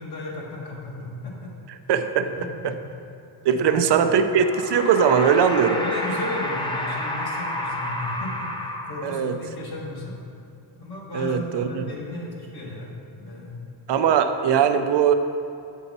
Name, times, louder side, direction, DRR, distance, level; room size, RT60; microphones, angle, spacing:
voice 1, 0.0-1.5 2.2-2.8 3.5-4.0 5.6-10.2 10.8-13.6, left 2 dB, 50° left, -3 dB, 1.4 m, -34 dB
voice 2, 1.9-2.8 3.4-5.8 9.0-9.4 11.1-11.8 13.9-15.1, right 7 dB, 60° right, 8 dB, 0.5 m, -20 dB
sound 1, 4.3-9.4, left 1 dB, 10° left, 0.4 m, -30 dB
7.4 x 5.5 x 4.0 m, 2.6 s
wide cardioid pair, 160°, 47 cm